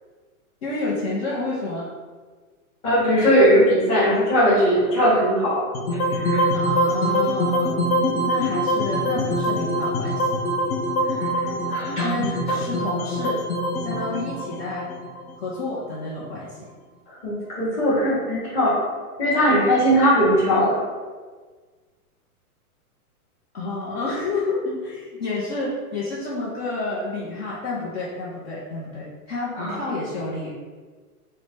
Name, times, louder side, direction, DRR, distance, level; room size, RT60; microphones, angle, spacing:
voice 1, 0.6-1.9 6.5-7.9 8.2-10.3 12.0-13.4 13.8-14.9 15.4-16.7 23.5-30.5, left 3 dB, 45° left, -7 dB, 0.7 m, -29 dB
voice 2, 2.8-5.6 5.9-6.4 11.2-11.3 11.7-12.2 17.2-18.8 19.2-20.8 29.6-29.8, equal, 15° left, -10 dB, 0.9 m, -19 dB
sound 1, 5.7-15.9, equal, 75° left, 0.8 m, -24 dB
3.8 x 2.1 x 3.2 m, 1.5 s
hypercardioid pair, 160°, 45 cm